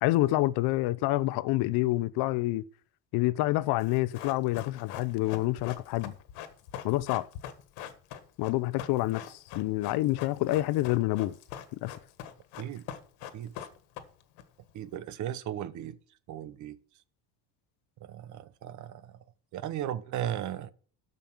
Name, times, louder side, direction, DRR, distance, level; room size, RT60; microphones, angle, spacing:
voice 1, 0.0-2.6 3.1-6.1 6.8-7.3 8.4-11.3 11.8-11.9, left 18 dB, 70° left, 0.7 m, -27 dB
Run, 3.8-14.4 14.7-14.8, left 10 dB, 90° left, 1.5 m, -43 dB
voice 2, 14.7-16.0 16.3-16.8 18.0-19.2 19.5-20.7, right 11 dB, 45° right, 0.8 m, -36 dB
12.5 x 5.3 x 6.0 m
cardioid pair, 155°, 40 cm